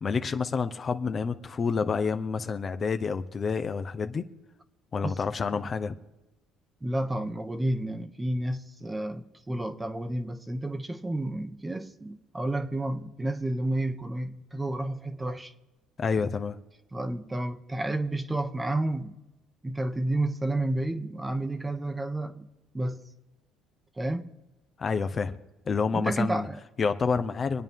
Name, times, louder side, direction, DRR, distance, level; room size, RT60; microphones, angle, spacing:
voice 1, 0.0-4.3 4.9-5.9 16.0-16.6 24.8-25.4 25.7-26.5 26.8-27.6, left 5 dB, 35° left, 0.9 m, -28 dB
voice 2, 6.8-15.5 16.9-19.2 19.6-22.5 22.7-23.0 24.0-24.3 25.9-26.6, right 1 dB, 15° right, 1.1 m, -31 dB
25.5 x 9.0 x 3.7 m
supercardioid pair, 90°, 0 cm